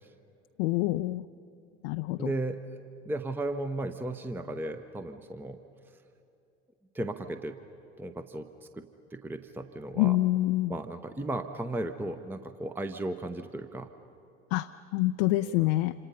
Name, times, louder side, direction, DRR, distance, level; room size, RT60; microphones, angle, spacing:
voice 1, 0.6-1.2 1.8-2.3 10.0-10.8 14.5-15.9, left 17 dB, 55° left, 9 dB, 0.5 m, -26 dB
voice 2, 2.2-2.6 3.0-5.6 6.9-7.6 8.0-8.5 8.7-8.8 9.1-10.2 10.7-13.9 15.4-15.7, right 2 dB, 5° right, 9 dB, 0.8 m, -35 dB
27.0 x 26.5 x 5.6 m, 2.7 s
figure-of-eight pair, 65°, 35 cm